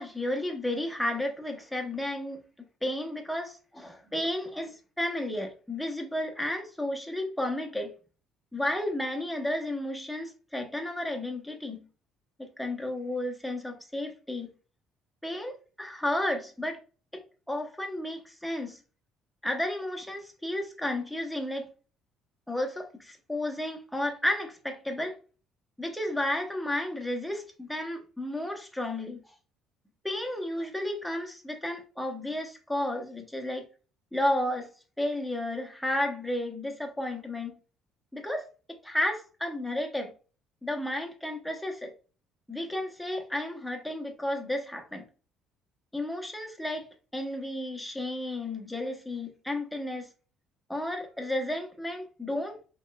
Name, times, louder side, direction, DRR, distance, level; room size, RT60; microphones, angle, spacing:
voice 1, 0.0-2.4 2.8-7.9 8.5-11.8 12.4-14.5 15.2-16.8 17.5-18.8 19.4-21.7 22.5-25.1 25.8-29.2 30.0-33.7 34.1-34.7 35.0-37.6 38.1-38.4 38.8-40.1 40.6-41.9 42.5-45.0 45.9-46.9 47.1-50.1 50.7-52.6, left 1 dB, 5° left, 1.0 m, -32 dB
5.2 x 3.1 x 2.3 m
cardioid pair, 105°, 0 cm